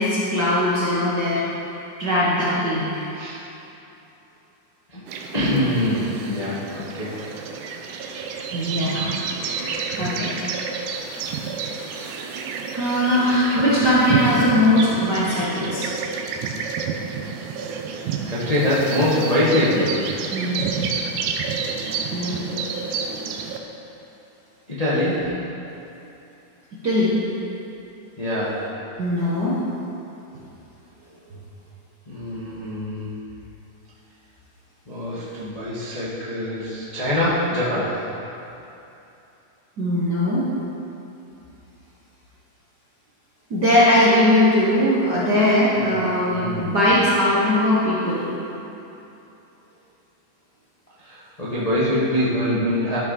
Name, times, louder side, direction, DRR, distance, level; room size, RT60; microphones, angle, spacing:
voice 1, 0.0-1.4 2.0-3.0 8.5-9.1 9.4-10.3 11.6-12.2 12.7-15.9 20.3-20.6 22.1-22.4 26.8-27.1 29.0-29.6 39.8-40.5 43.5-48.2, left 1 dB, 60° right, -8 dB, 1.1 m, -20 dB
sound 1, 5.1-23.6, right 5 dB, 80° right, 2.2 m, -29 dB
voice 2, 5.3-7.1 18.2-20.1 21.9-22.4 24.7-25.4 28.2-28.6 32.1-33.1 34.9-38.0 45.8-46.1 46.3-46.7 51.0-53.0, left 1 dB, 70° left, -9 dB, 0.3 m, -24 dB
13.0 x 6.0 x 4.2 m, 2.9 s
omnidirectional pair, 3.6 m